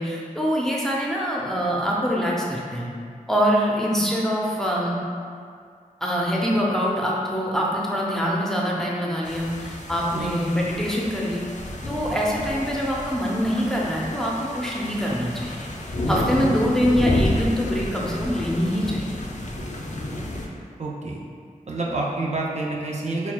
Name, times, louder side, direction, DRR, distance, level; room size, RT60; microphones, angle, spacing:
voice 1, 0.0-2.9 3.3-5.0 6.0-11.4 11.9-15.7 16.1-19.2, equal, 5° left, -4 dB, 0.6 m, -24 dB
sound 1, 9.2-20.5, left 1 dB, 55° left, 0.5 m, -30 dB
voice 2, 20.8-21.2 21.7-23.3, right 2 dB, 50° right, -3 dB, 0.5 m, -28 dB
6.0 x 2.3 x 2.2 m, 2.2 s
wide cardioid pair, 60°, 15 cm